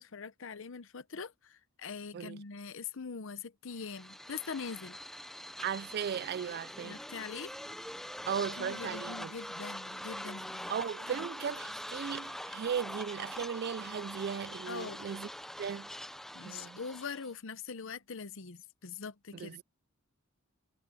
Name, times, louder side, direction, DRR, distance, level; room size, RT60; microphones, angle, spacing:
voice 1, 0.0-5.0 6.8-7.5 8.6-10.7 11.1-11.3 14.7-15.1 16.3-19.6, left 5 dB, 65° left, 0.8 m, -43 dB
sound 1, 3.8-17.3, equal, ahead, 0.7 m, -44 dB
voice 2, 5.6-7.0 8.3-9.3 10.7-15.3 15.6-15.9 16.5-16.8 19.3-19.6, right 7 dB, 50° right, 0.3 m, -37 dB
head